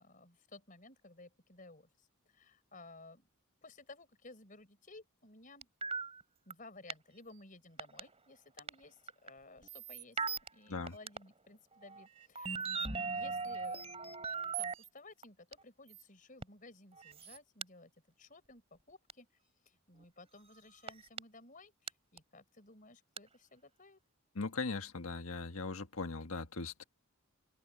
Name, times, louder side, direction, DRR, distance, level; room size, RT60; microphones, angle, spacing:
voice 1, 0.0-3.3 3.6-5.7 6.5-10.2 10.5-13.9 14.6-17.9 18.2-19.3 19.6-24.0, left 2 dB, 40° left, 4.6 m, -56 dB
sound 1, 5.6-6.2 6.5-6.6 6.9-7.0 7.8-8.0 8.6-8.7 9.1-9.3 9.6-10.5 10.9-11.2 11.8-14.9 15.2-15.3 15.5-15.6 15.9-16.0 16.4-16.5 17.0-17.6 19.1-19.2 20.0-20.1 20.9-21.2 21.9-22.0 22.2-22.3 23.2-23.3, right 5 dB, 30° right, 3.4 m, -39 dB
voice 2, 24.3-26.8, left 3 dB, 80° left, 1.5 m, -39 dB
open air
head